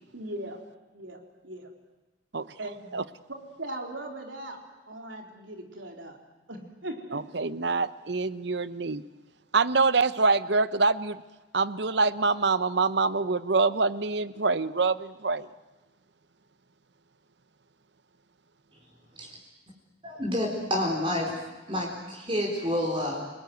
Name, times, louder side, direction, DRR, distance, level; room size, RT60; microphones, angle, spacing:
voice 1, 0.1-0.6 0.9-1.7 2.6-3.0 3.3-4.6 4.9-6.2 6.5-7.5, right 1 dB, 85° right, 2 dB, 3.9 m, -39 dB
voice 2, 7.1-9.0 9.5-11.2 11.5-15.5, right 4 dB, 65° right, 15 dB, 0.9 m, -25 dB
voice 3, 20.0-23.3, left 1 dB, 25° right, 0 dB, 4.3 m, -29 dB
29.0 x 20.0 x 9.4 m, 1.2 s
head